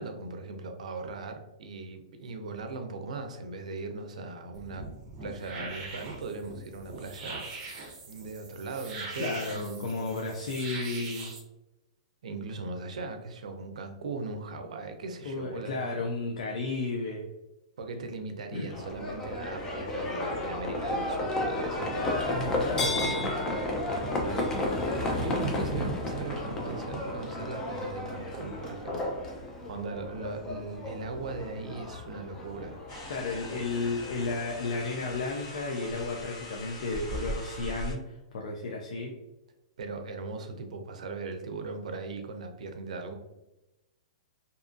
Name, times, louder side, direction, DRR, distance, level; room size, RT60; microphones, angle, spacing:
voice 1, 0.0-4.9 5.2-7.5 8.1-10.4 12.2-16.1 17.8-23.4 23.8-24.5 25.1-29.2 29.7-32.8 39.8-43.2, right 3 dB, 80° right, 6 dB, 0.5 m, -39 dB
sound 1, 4.5-11.4, right 3 dB, 30° right, 0.6 m, -42 dB
voice 2, 9.2-11.3 15.2-17.3 18.5-18.7 22.3-23.3 33.1-39.1, left 3 dB, 70° left, 0 dB, 0.4 m, -33 dB
Livestock farm animals working animals, 18.7-35.2, left 1 dB, 15° left, 0.4 m, -33 dB
sound 2, 32.9-37.9, equal, 45° left, 0.9 m, -40 dB
2.6 x 2.4 x 2.5 m, 0.97 s
hypercardioid pair, 150°, 4 cm